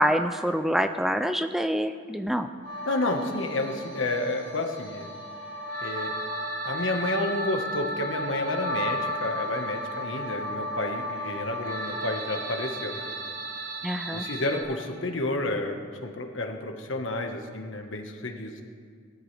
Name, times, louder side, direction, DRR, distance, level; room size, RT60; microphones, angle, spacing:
voice 1, 0.0-2.5 13.8-14.3, equal, ahead, 8 dB, 0.3 m, -26 dB
sound 1, 2.6-14.6, equal, 65° right, 4.0 m, -34 dB
voice 2, 2.9-5.1 5.8-6.1 6.6-13.1 14.1-18.5, left 2 dB, 75° left, 3 dB, 1.4 m, -30 dB
19.5 x 13.5 x 3.4 m, 2.1 s
head